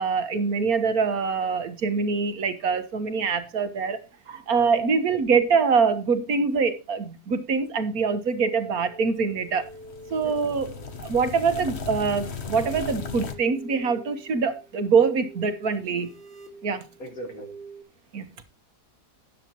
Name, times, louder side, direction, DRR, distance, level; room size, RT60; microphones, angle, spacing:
voice 1, 0.0-4.0 4.3-9.7 10.1-10.7 11.0-16.1 16.6-16.8 18.1-18.3, right 5 dB, 65° right, 1.7 m, -24 dB
sound 1, 8.6-17.8, right 1 dB, 5° left, 2.9 m, -47 dB
sound 2, 9.5-13.3, left 5 dB, 45° left, 1.4 m, -36 dB
voice 2, 10.2-10.9 17.0-17.5, right 1 dB, 60° left, 2.4 m, -40 dB
13.0 x 10.5 x 3.0 m
omnidirectional pair, 1.7 m